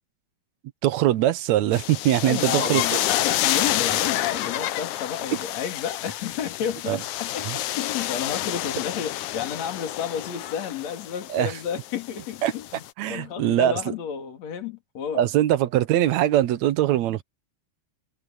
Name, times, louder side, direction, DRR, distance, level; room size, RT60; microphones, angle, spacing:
voice 1, 0.8-2.8 6.9-7.0 11.3-11.5 12.4-12.5 13.0-13.9 15.1-17.2, right 12 dB, 75° right, 2.1 m, -22 dB
sound 1, 1.7-12.9, left 14 dB, 85° left, 2.3 m, -29 dB
voice 2, 2.2-15.3, left 8 dB, 65° left, 3.8 m, -31 dB
omnidirectional pair, 3.4 m